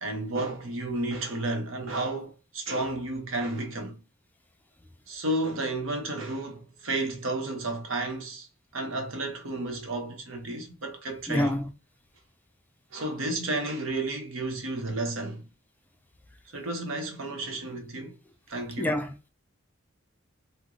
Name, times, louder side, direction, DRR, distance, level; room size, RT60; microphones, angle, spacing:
voice 1, 0.0-4.0 5.1-8.5 8.7-11.6 12.9-15.4 16.5-18.2 18.5-19.0, right 2 dB, 85° right, 0.9 m, -32 dB
voice 2, 11.3-11.7 18.8-19.3, left 1 dB, 10° left, 0.3 m, -27 dB
3.0 x 2.1 x 3.7 m
head